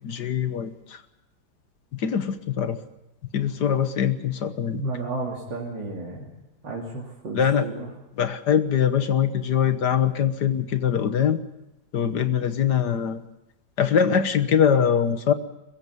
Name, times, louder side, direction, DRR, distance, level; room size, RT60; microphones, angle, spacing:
voice 1, 0.0-1.0 1.9-2.8 3.3-4.8 7.3-7.7 8.2-11.4 11.9-13.2 13.8-15.3, left 8 dB, 65° left, 11 dB, 1.7 m, -22 dB
voice 2, 4.7-6.3 6.6-7.9, right 2 dB, 70° right, -3 dB, 3.5 m, -32 dB
22.0 x 15.5 x 9.5 m, 0.96 s
omnidirectional pair, 2.0 m